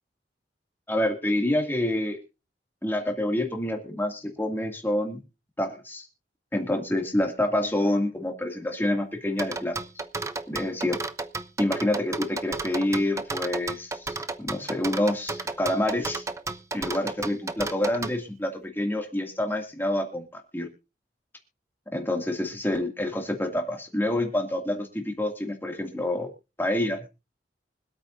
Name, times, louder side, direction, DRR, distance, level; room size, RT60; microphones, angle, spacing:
voice 1, 0.9-2.2 2.8-5.2 5.6-6.1 6.5-9.8 10.5-11.0 11.6-16.2 16.7-20.7 21.9-26.3 26.6-27.0, left 1 dB, 15° left, 3 dB, 2.2 m, -27 dB
sound 1, 9.4-18.1, right 3 dB, 15° right, 0.5 m, -32 dB
24.5 x 8.6 x 2.6 m, 0.29 s
head